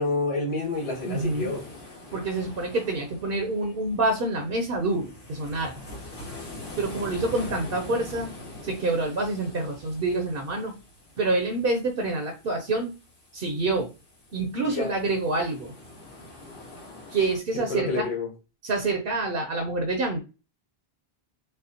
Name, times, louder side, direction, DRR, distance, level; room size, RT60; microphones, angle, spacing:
voice 1, 0.0-1.6 14.6-14.9 17.5-18.3, left 3 dB, 80° left, 1.5 m, -28 dB
sound 1, 0.6-17.4, left 1 dB, 60° left, 1.4 m, -44 dB
voice 2, 1.0-1.5 2.1-5.8 6.8-8.3 8.6-10.8 11.2-12.9 13.3-13.9 14.3-15.7 17.1-18.1 18.6-20.2, right 2 dB, 65° right, 0.9 m, -27 dB
5.3 x 2.0 x 2.8 m
omnidirectional pair, 1.0 m